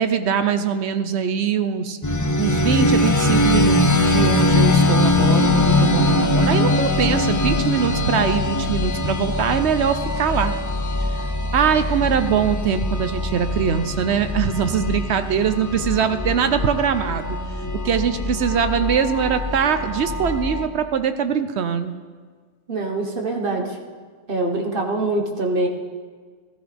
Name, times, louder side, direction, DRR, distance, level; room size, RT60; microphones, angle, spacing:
voice 1, 0.0-10.5 11.5-21.9, right 7 dB, 65° right, 10 dB, 0.9 m, -22 dB
sound 1, 2.0-20.7, left 2 dB, 25° left, 0.4 m, -21 dB
voice 2, 22.7-23.8 24.3-25.7, right 2 dB, 45° right, 2 dB, 1.4 m, -24 dB
15.5 x 13.5 x 3.4 m, 1.5 s
omnidirectional pair, 1.3 m